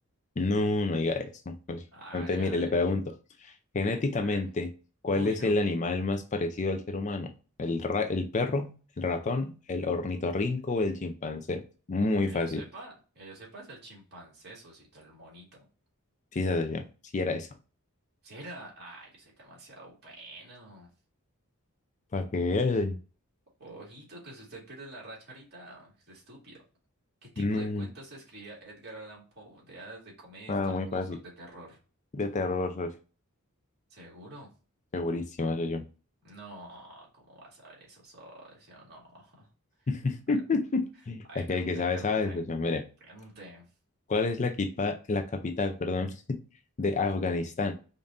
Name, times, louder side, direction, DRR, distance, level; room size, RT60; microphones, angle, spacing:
voice 1, 0.4-1.8 2.1-3.0 3.4-4.7 5.0-7.3 7.6-11.6 11.9-12.6 16.3-16.8 17.1-17.5 22.1-23.0 27.4-27.9 30.5-31.2 32.1-32.9 34.9-35.8 39.9-42.8 44.1-46.4 46.8-47.7, left 3 dB, 35° left, 7 dB, 0.4 m, -29 dB
voice 2, 1.9-2.8 4.2-4.4 5.1-5.5 12.2-15.7 18.2-20.9 23.6-26.6 27.2-31.8 33.9-34.5 36.2-39.5 39.8-39.9 41.3-42.4 43.0-43.7, right 1 dB, 50° right, -4 dB, 2.1 m, -47 dB
5.2 x 2.6 x 2.5 m, 0.35 s
head